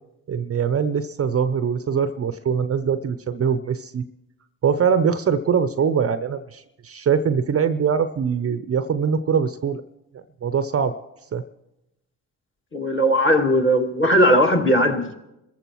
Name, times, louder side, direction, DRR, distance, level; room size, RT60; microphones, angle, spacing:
voice 1, 0.3-4.0 4.6-9.8 10.4-11.0 11.3-11.4, right 7 dB, 35° right, 12 dB, 0.7 m, -22 dB
voice 2, 12.7-15.1, equal, 30° left, 2 dB, 2.3 m, -18 dB
28.5 x 14.5 x 3.1 m, 0.93 s
hypercardioid pair, 50°, 40 cm